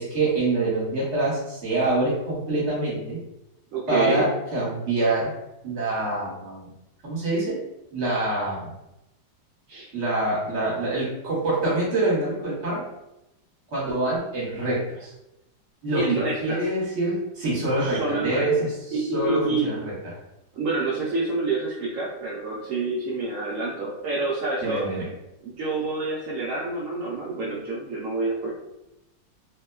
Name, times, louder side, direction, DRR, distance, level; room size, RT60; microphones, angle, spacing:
voice 1, 0.0-3.2 3.9-5.3 5.6-6.7 7.0-7.6 7.9-8.7 9.9-12.8 13.7-15.1 15.8-19.9 24.6-25.1, right 2 dB, 45° right, -7 dB, 1.2 m, -25 dB
voice 2, 3.7-4.3 9.7-9.9 15.9-16.7 17.8-18.5 18.9-19.7 20.5-24.9 25.4-28.5, right 3 dB, 70° right, -6 dB, 0.8 m, -27 dB
2.9 x 2.1 x 2.2 m, 0.90 s
omnidirectional pair, 1.8 m